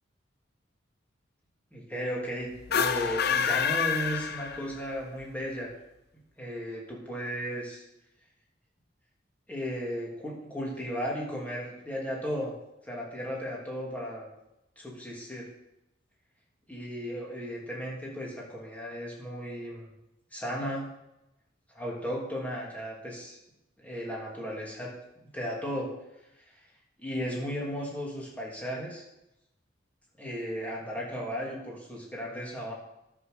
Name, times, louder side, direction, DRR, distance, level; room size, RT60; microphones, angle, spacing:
voice 1, 1.7-5.7 6.4-7.8 9.5-12.5 12.8-14.3 14.8-15.5 16.7-19.9 20.3-20.9 21.7-23.4 23.8-24.9 25.3-25.9 27.0-29.0 30.2-32.7, equal, 10° left, -3 dB, 3.0 m, -35 dB
sound 1, 2.6-4.9, left 7 dB, 60° left, 0.6 m, -28 dB
10.5 x 6.1 x 6.9 m, 0.89 s
head